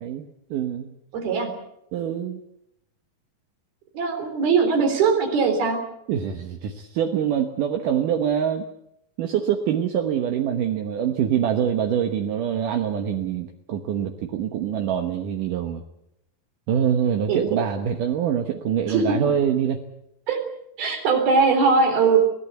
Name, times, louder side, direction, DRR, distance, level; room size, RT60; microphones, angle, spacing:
voice 1, 0.0-0.9 1.9-2.4 6.1-8.7 9.2-15.8 16.7-19.8, right 9 dB, 70° right, 4 dB, 2.6 m, -25 dB
voice 2, 1.1-1.6 3.9-5.8 17.3-17.4 18.9-19.2 20.3-20.4 20.8-22.2, right 5 dB, 85° right, 5 dB, 5.5 m, -20 dB
23.0 x 17.0 x 8.1 m, 0.80 s
omnidirectional pair, 4.2 m